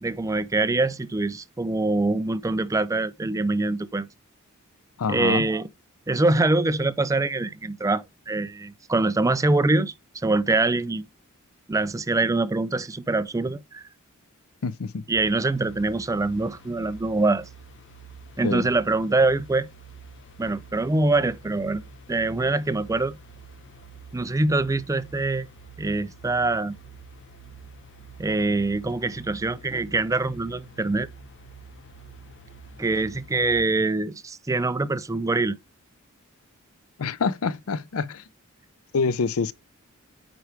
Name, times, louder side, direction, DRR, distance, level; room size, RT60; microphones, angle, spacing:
voice 1, 0.0-4.1 5.1-5.7 6.1-11.0 11.7-13.8 15.1-17.5 18.4-19.7 20.4-21.8 22.1-23.2 24.1-25.5 25.8-26.8 28.2-31.1 32.8-35.6, right 2 dB, 15° right, 0.4 m, -24 dB
voice 2, 5.0-5.4 14.6-15.0 18.4-18.7 37.0-38.2 38.9-39.5, left 4 dB, 85° left, 0.5 m, -26 dB
sound 1, 15.1-33.6, right 3 dB, 60° left, 1.4 m, -47 dB
9.0 x 4.7 x 3.4 m
head